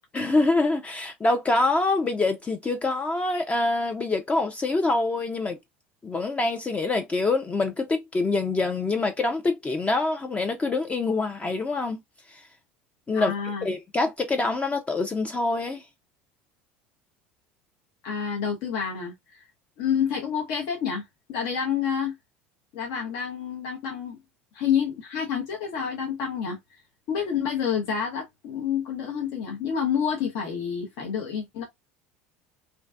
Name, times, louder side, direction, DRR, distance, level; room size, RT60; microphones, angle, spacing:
voice 1, 0.1-5.6 6.0-12.0 12.3-12.4 13.1-13.3 13.6-15.8, left 3 dB, 20° left, 0.4 m, -25 dB
voice 2, 13.1-13.7 18.0-19.4 19.8-21.0 21.3-22.1 22.7-24.2 24.5-26.6 27.1-31.6, left 7 dB, 65° left, 0.8 m, -28 dB
2.6 x 2.2 x 2.3 m
hypercardioid pair, 75°, 6 cm